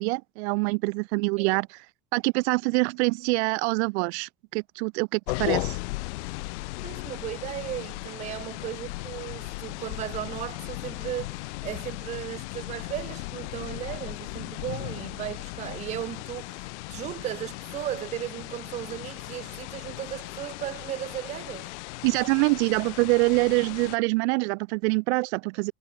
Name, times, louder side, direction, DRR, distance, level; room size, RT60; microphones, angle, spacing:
voice 1, 0.0-1.8 2.1-5.8 22.0-25.7, right 28 dB, 70° right, 0.5 m, -25 dB
sound 1, 5.3-24.0, left 24 dB, 80° left, 1.3 m, -36 dB
voice 2, 6.8-21.8, right 12 dB, 20° right, 0.5 m, -36 dB
cardioid pair, 160°, 34 cm